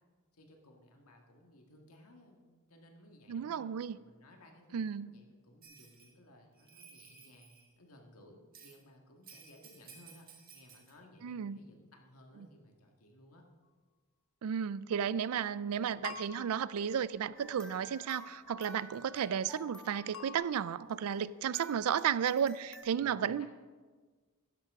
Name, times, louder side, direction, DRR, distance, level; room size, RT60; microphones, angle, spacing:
voice 1, 0.3-13.4 23.0-23.5, left 1 dB, 85° left, 2 dB, 1.7 m, -59 dB
voice 2, 3.3-4.0 4.7-5.1 11.2-11.6 14.4-23.5, right 8 dB, 80° right, 18 dB, 0.4 m, -33 dB
Bell, 5.6-6.1 6.6-7.7 8.5-8.8 9.2-10.9, right 6 dB, 40° right, 1.7 m, -56 dB
sound 1, 16.0-17.6 20.1-20.4, left 7 dB, 70° left, 0.7 m, -48 dB
sound 2, 17.4-21.2 21.5-22.8, equal, 5° left, 1.2 m, -52 dB
12.0 x 10.5 x 3.6 m, 1.4 s
head